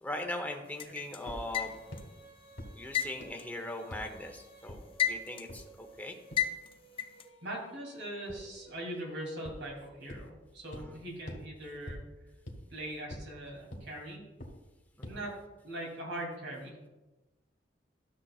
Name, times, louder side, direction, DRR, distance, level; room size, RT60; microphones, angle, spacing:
voice 1, 0.0-1.8 2.7-6.1 10.7-11.0 15.0-15.3, left 1 dB, 10° left, 3 dB, 0.9 m, -40 dB
sound 1, 0.8-2.1 2.9-4.3 4.7-5.6 6.4-7.2, left 10 dB, 30° left, 0.5 m, -32 dB
Female singing, 1.2-10.3, right 3 dB, 25° right, 2.0 m, -58 dB
sound 2, 1.3-1.4 1.9-2.0 2.6-2.7 3.2-3.3 3.9-4.0 4.7-4.8 5.5-5.6 6.3-6.4 8.3-8.4 9.5-9.6 10.1-10.2 10.7-10.8 11.3-11.4 11.9-12.0 12.5-12.6 13.1-13.2 13.7-13.8 14.4-14.5 15.0-15.1, left 1 dB, 70° left, 1.7 m, -42 dB
voice 2, 7.4-12.0 12.7-14.2 15.0-15.4 15.6-16.9, right 1 dB, 80° right, -2 dB, 3.0 m, -41 dB
13.0 x 7.4 x 2.4 m, 1.1 s
head